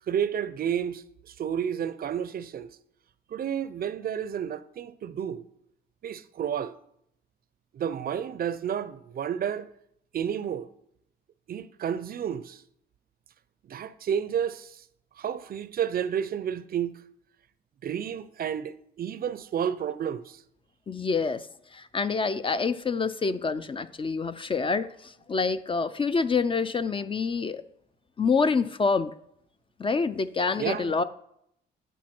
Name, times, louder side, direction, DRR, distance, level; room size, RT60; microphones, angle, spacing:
voice 1, 0.1-2.8 3.3-5.5 6.0-6.8 7.7-9.7 10.1-10.7 11.5-12.6 13.6-14.8 15.2-16.9 17.8-20.4 30.6-30.9, right 8 dB, 50° right, 0.5 m, -31 dB
voice 2, 20.9-21.5 21.7-27.6 28.2-29.1 29.8-31.0, left 4 dB, 25° left, 0.3 m, -27 dB
9.1 x 4.5 x 4.4 m
cardioid pair, 90°, 20 cm